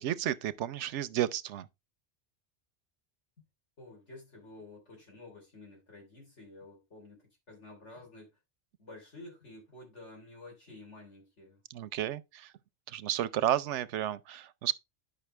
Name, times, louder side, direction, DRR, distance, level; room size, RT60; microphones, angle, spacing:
voice 1, 0.0-1.7 11.7-12.5 12.9-14.7, right 11 dB, 90° right, 0.9 m, -32 dB
voice 2, 3.8-8.3 8.8-11.6, left 2 dB, 85° left, 3.8 m, -51 dB
10.0 x 5.6 x 3.2 m
omnidirectional pair, 1.2 m